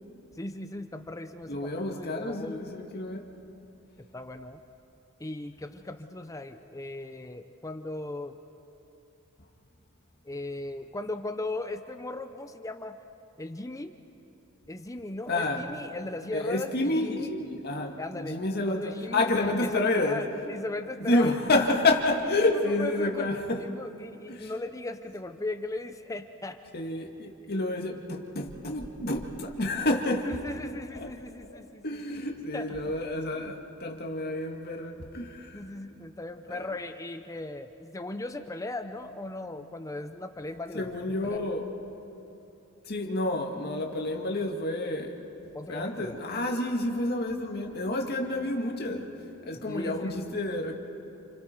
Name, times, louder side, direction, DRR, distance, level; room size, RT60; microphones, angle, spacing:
voice 1, 0.4-2.7 4.1-4.6 5.2-8.4 10.2-13.0 13.4-13.9 14.7-17.3 18.0-18.4 18.7-21.5 22.8-23.3 23.6-26.6 30.3-32.2 32.5-32.9 33.3-33.5 34.9-35.0 35.5-41.5 45.5-46.1 49.5-50.2, left 2 dB, 15° left, 8 dB, 0.7 m, -37 dB
voice 2, 1.5-3.3 15.3-15.6 16.3-20.3 21.0-23.7 24.3-24.5 26.7-30.4 31.0-31.1 31.5-35.7 36.5-36.7 40.7-41.7 42.8-45.2 45.7-49.1 49.4-50.7, left 2 dB, 50° left, 2 dB, 2.1 m, -29 dB
29.0 x 28.5 x 4.6 m, 2.9 s
head